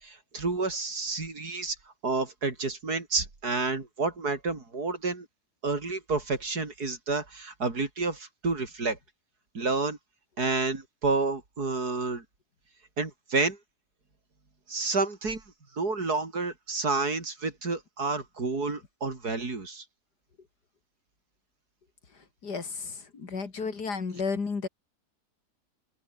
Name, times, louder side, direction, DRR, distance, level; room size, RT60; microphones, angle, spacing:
voice 1, 0.0-1.8 2.0-5.3 5.6-9.0 9.5-10.0 10.4-12.2 13.0-13.6 14.7-15.4 15.7-19.8, right 3 dB, 70° right, 4.4 m, -30 dB
voice 2, 22.4-24.7, left 4 dB, 85° left, 3.3 m, -32 dB
open air
omnidirectional pair, 1.7 m